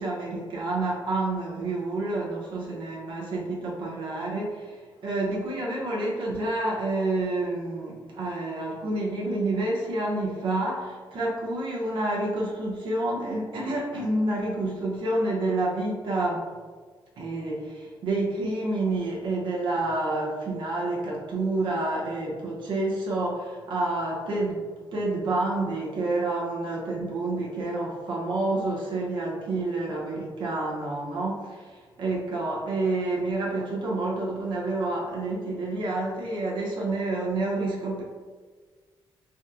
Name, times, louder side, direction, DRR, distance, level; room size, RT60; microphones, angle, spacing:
voice 1, 0.0-16.5 17.2-38.0, right 2 dB, 65° right, -4 dB, 0.6 m, -29 dB
3.5 x 2.4 x 2.7 m, 1.5 s
wide cardioid pair, 160°, 9 cm